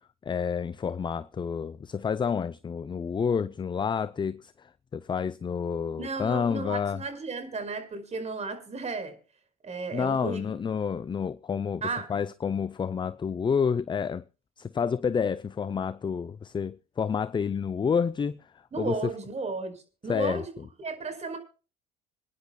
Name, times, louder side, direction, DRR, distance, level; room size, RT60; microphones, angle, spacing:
voice 1, 0.2-7.0 9.9-11.8 12.1-14.2 14.6-18.4 18.8-19.1 20.1-20.4, left 6 dB, 25° left, 0.5 m, -29 dB
voice 2, 6.0-9.2 9.6-10.4 11.8-12.1 18.7-19.7 20.0-20.5 20.8-21.4, right 4 dB, 35° right, 4.9 m, -34 dB
27.5 x 10.5 x 2.3 m
supercardioid pair, 75°, 20 cm